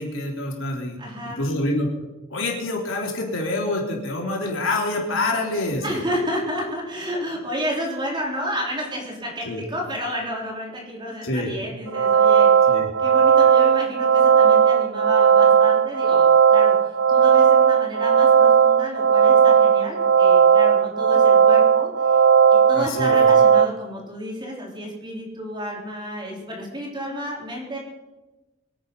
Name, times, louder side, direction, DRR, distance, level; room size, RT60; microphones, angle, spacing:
voice 1, 0.0-1.0 1.3-1.9 2.3-6.0 9.5-9.6 11.2-11.5 12.7-12.9 22.7-23.3, left 2 dB, 80° left, 0 dB, 3.6 m, -26 dB
voice 2, 1.0-1.5 5.8-12.7 13.0-22.2 22.5-27.8, equal, 25° right, -2 dB, 3.8 m, -31 dB
sound 1, 11.9-23.7, right 7 dB, 80° right, 0.5 m, -16 dB
24.0 x 8.9 x 5.5 m, 1.1 s
head